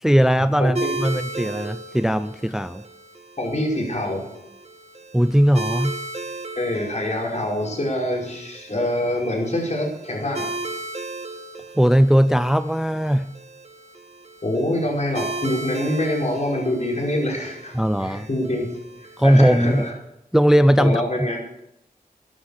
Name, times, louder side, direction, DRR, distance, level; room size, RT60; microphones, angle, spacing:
voice 1, 0.0-2.8 5.1-6.0 11.8-13.3 17.8-18.3 19.2-19.8 20.3-21.0, equal, 5° right, 12 dB, 0.4 m, -18 dB
voice 2, 0.6-1.1 3.4-4.3 6.6-10.5 14.4-18.7 19.0-19.9 20.8-21.4, left 1 dB, 50° left, -2 dB, 5.2 m, -25 dB
sound 1, 0.7-19.9, right 2 dB, 45° right, 1.8 m, -36 dB
13.5 x 11.5 x 6.6 m, 0.81 s
wide cardioid pair, 90°, 16 cm